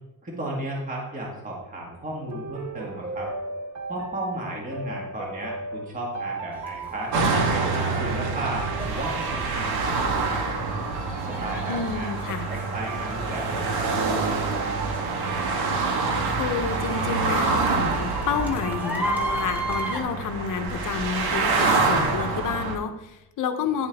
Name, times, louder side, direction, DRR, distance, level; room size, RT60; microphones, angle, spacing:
voice 1, 0.2-3.3 3.9-7.1 7.5-10.5 11.3-12.1 12.5-15.0, right 1 dB, 20° right, -2 dB, 1.6 m, -34 dB
sound 1, 2.3-19.6, right 4 dB, 45° right, 1.1 m, -38 dB
sound 2, 6.5-20.0, right 1 dB, 5° right, 1.2 m, -36 dB
sound 3, 7.1-22.8, right 4 dB, 85° right, 1.5 m, -26 dB
voice 2, 11.7-12.5 16.3-23.9, left 6 dB, 55° left, 7 dB, 0.8 m, -29 dB
9.9 x 6.9 x 3.5 m, 0.92 s
cardioid pair, 175°, 37 cm